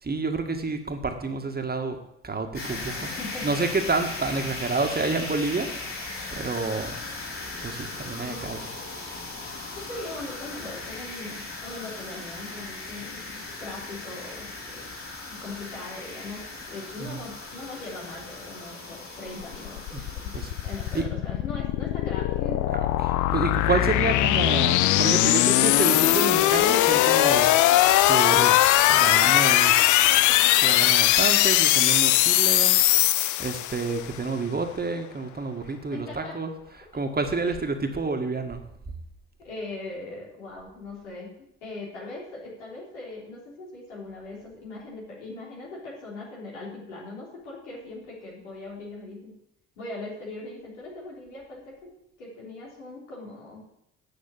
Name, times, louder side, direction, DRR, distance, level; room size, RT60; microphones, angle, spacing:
voice 1, 0.0-2.0 2.2-3.1 3.4-5.7 6.3-7.0 7.6-8.6 17.0-17.2 19.9-20.1 20.3-20.5 20.9-21.1 23.0-27.5 28.0-30.0 30.3-32.8 33.4-36.5 36.9-38.6, right 3 dB, 25° right, 5 dB, 1.9 m, -29 dB
sound 1, 2.5-21.0, left 3 dB, 35° left, 4.7 m, -38 dB
voice 2, 2.7-3.6 8.2-8.5 9.8-14.8 15.4-20.3 20.6-22.7 35.9-36.3 39.4-41.3 41.6-49.4 49.8-51.7 52.2-53.6, left 2 dB, 85° left, -4 dB, 3.7 m, -40 dB
sound 2, 19.4-34.0, left 14 dB, 60° left, 0.6 m, -20 dB
9.2 x 6.4 x 8.4 m, 0.79 s
hypercardioid pair, 50°, 35 cm